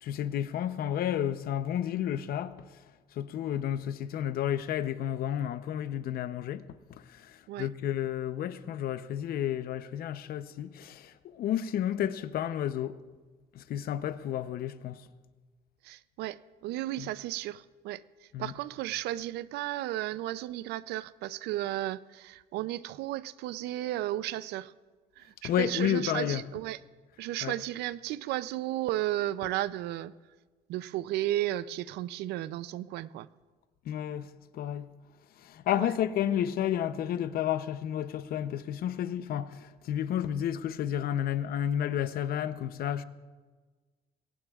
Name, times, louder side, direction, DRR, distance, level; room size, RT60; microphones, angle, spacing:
voice 1, 0.0-2.8 3.1-6.6 7.0-13.0 13.5-15.1 17.0-17.1 18.3-18.5 25.4-26.4 27.4-27.6 33.8-34.9 35.4-43.1, left 10 dB, 60° left, 0.7 m, -31 dB
voice 2, 15.8-24.7 25.2-26.8 27.2-30.1 30.7-33.3 35.7-35.9 36.2-36.3, right 14 dB, 80° right, 0.5 m, -34 dB
22.5 x 17.5 x 2.4 m
cardioid pair, 110°, 17 cm